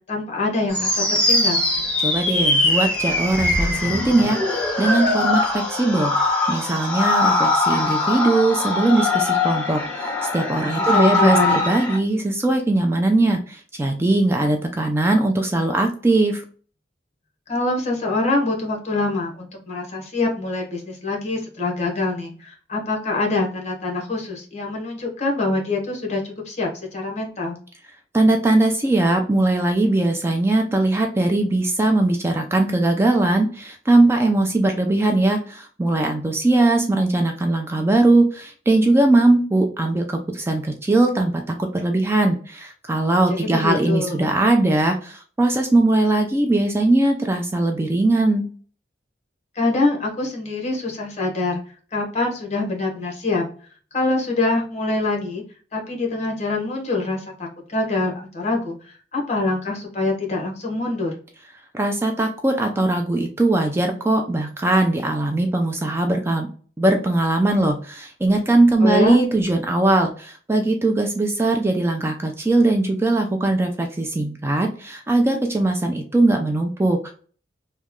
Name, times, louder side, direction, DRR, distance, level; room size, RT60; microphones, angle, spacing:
voice 1, 0.1-1.6 10.8-11.7 17.5-27.6 43.4-44.3 49.5-51.6 51.9-53.5 53.9-55.4 55.7-61.1 68.8-69.2, left 2 dB, 40° left, 1 dB, 1.0 m, -25 dB
sound 1, 0.7-12.0, left 2 dB, 5° left, 0.9 m, -21 dB
voice 2, 2.0-6.1 6.5-16.4 28.1-48.4 61.7-66.5 66.8-77.1, right 2 dB, 15° right, 4 dB, 0.3 m, -20 dB
3.1 x 2.2 x 3.5 m, 0.42 s
head